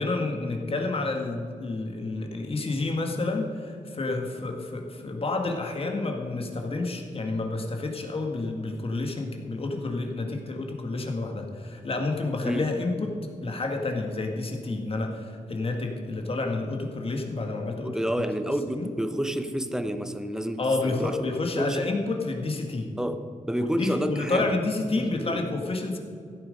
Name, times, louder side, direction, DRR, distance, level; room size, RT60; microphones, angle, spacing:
voice 1, 0.0-18.3 18.8-18.9 20.6-22.9 23.6-26.0, left 2 dB, 45° left, 3 dB, 1.9 m, -29 dB
voice 2, 17.8-21.9 23.0-24.5 25.0-25.4, equal, 5° right, 9 dB, 0.9 m, -30 dB
15.5 x 9.1 x 5.3 m, 2.3 s
wide cardioid pair, 105°, 14 cm